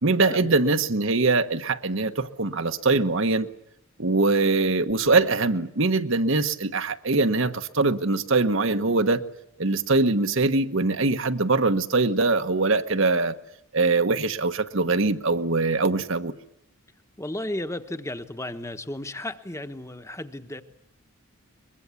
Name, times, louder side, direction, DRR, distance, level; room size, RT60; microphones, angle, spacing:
voice 1, 0.0-3.5 4.0-9.2 9.6-13.3 13.7-16.3, right 3 dB, 60° right, 1.1 m, -22 dB
voice 2, 17.2-20.6, left 1 dB, 15° left, 1.2 m, -34 dB
23.5 x 21.5 x 8.4 m
head